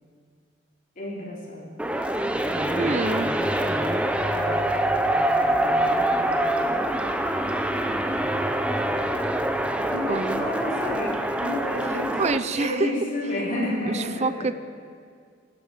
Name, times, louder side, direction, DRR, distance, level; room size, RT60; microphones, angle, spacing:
voice 1, 1.0-1.7 2.3-2.9 4.2-4.6 5.1-6.7 9.9-12.2 12.5-14.5, left 1 dB, 50° left, -4 dB, 4.0 m, -32 dB
sound 1, 1.8-12.4, right 1 dB, 5° right, 0.8 m, -25 dB
voice 2, 2.8-3.3 10.1-10.5 12.2-12.9 13.9-14.6, right 3 dB, 35° right, 13 dB, 0.5 m, -26 dB
17.5 x 9.9 x 7.5 m, 2.1 s
head